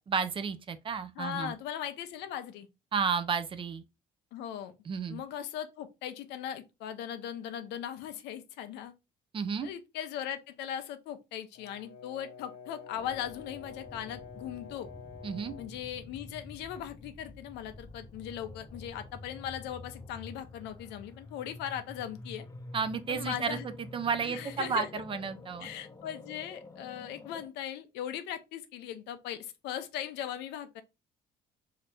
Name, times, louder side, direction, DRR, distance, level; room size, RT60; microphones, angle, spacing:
voice 1, 0.1-1.5 2.9-3.8 4.9-5.2 9.3-9.7 15.2-15.6 22.7-25.7, right 6 dB, 30° right, 0.4 m, -32 dB
voice 2, 1.2-2.7 4.3-4.7 5.1-8.9 9.6-14.9 15.6-22.5 23.1-23.7 24.2-25.0 25.6-30.8, left 10 dB, 85° left, 0.6 m, -39 dB
Brass instrument, 11.5-15.8, left 6 dB, 65° left, 1.2 m, -49 dB
sound 1, 12.9-27.5, left 2 dB, 20° left, 0.6 m, -48 dB
2.8 x 2.6 x 3.3 m
cardioid pair, 110°, 17 cm